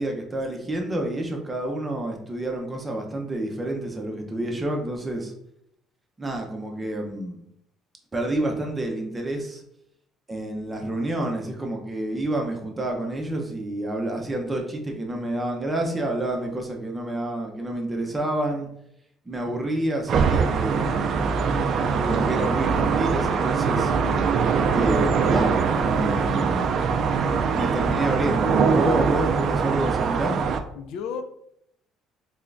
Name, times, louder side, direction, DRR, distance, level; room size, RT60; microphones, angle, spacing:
voice 1, 0.0-5.3 6.2-7.4 8.1-9.6 10.3-18.7 19.3-21.1 22.0-23.9 24.7-26.7 27.5-30.4, right 1 dB, 15° right, 1 dB, 0.7 m, -29 dB
sound 1, 20.1-30.6, right 5 dB, 50° right, 0.3 m, -22 dB
voice 2, 23.9-24.3 30.7-31.2, left 6 dB, 75° left, 8 dB, 0.4 m, -34 dB
3.6 x 3.3 x 2.5 m, 0.74 s
cardioid pair, 130°, 0 cm